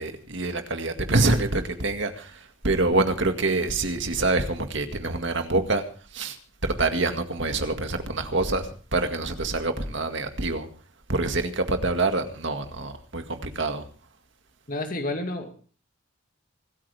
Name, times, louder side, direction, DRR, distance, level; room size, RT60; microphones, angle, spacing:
voice 1, 0.0-5.8 6.1-6.4 6.6-10.7 11.1-13.8, right 2 dB, 60° right, 2.0 m, -26 dB
voice 2, 14.7-15.6, left 2 dB, 40° left, 2.3 m, -30 dB
25.0 x 13.5 x 3.4 m
head